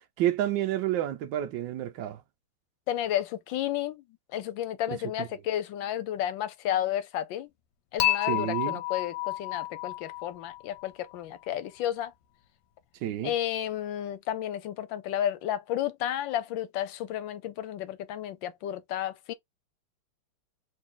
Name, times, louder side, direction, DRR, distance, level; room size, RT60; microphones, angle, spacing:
voice 1, 0.2-2.2 4.9-5.3 8.3-8.8 13.0-13.3, right 12 dB, 70° right, 1.3 m, -30 dB
voice 2, 2.9-4.0 4.3-7.5 7.9-12.1 13.2-19.3, left 11 dB, 70° left, 1.2 m, -32 dB
Dishes pots and pans / Chink clink, 8.0-11.1, left 16 dB, 85° left, 1.6 m, -30 dB
4.0 x 2.7 x 3.7 m
omnidirectional pair, 2.4 m